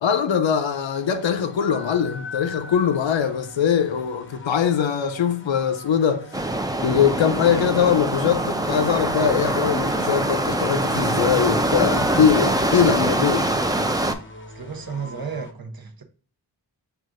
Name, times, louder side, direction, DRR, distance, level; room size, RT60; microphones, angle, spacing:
voice 1, 0.0-6.5 6.8-13.5, left 8 dB, 85° left, 0.6 m, -22 dB
sound 1, 0.7-15.5, left 2 dB, 25° left, 0.7 m, -42 dB
sound 2, 6.3-14.1, right 1 dB, 10° right, 0.4 m, -23 dB
voice 2, 14.3-16.0, right 5 dB, 55° right, 0.7 m, -34 dB
6.2 x 2.4 x 2.4 m
wide cardioid pair, 50°, 44 cm